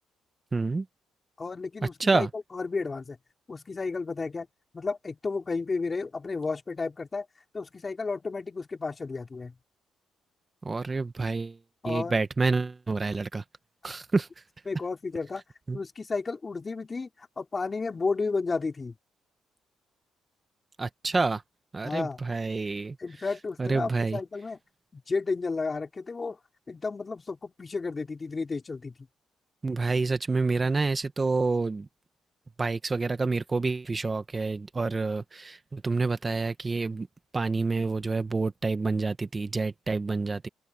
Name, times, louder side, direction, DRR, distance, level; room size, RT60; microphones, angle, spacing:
voice 1, 0.5-0.8 2.0-2.3 10.6-11.6 11.8-13.4 13.8-14.3 15.7-15.8 20.8-21.4 21.7-23.0 23.6-24.2 29.6-31.9 32.6-37.1 37.3-40.5, right 3 dB, 25° right, 1.4 m, -28 dB
voice 2, 1.4-3.2 3.5-4.5 4.7-7.3 7.5-9.5 11.8-12.2 13.8-13.9 14.7-15.4 15.7-19.0 21.8-22.2 23.0-24.6 24.9-26.4 26.7-28.9, left 4 dB, 30° left, 4.5 m, -32 dB
open air
cardioid pair, 90°, 0 cm